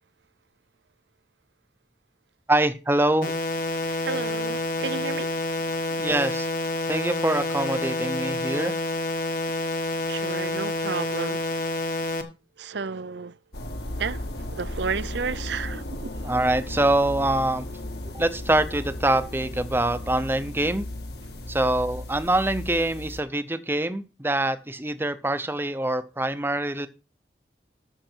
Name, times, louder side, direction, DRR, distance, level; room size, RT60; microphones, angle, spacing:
voice 1, 2.5-3.3 6.0-6.5 6.9-8.7 16.2-17.7 18.1-20.9 21.5-26.9, right 1 dB, 10° right, 0.7 m, -24 dB
sound 1, 3.2-12.2, left 2 dB, 50° left, 1.3 m, -28 dB
voice 2, 3.7-5.3 10.1-11.7 12.6-13.4 14.0-14.2 14.5-16.1, right 5 dB, 80° right, 0.6 m, -32 dB
sound 2, 13.5-23.2, left 1 dB, 65° left, 1.8 m, -35 dB
13.0 x 6.6 x 4.5 m
head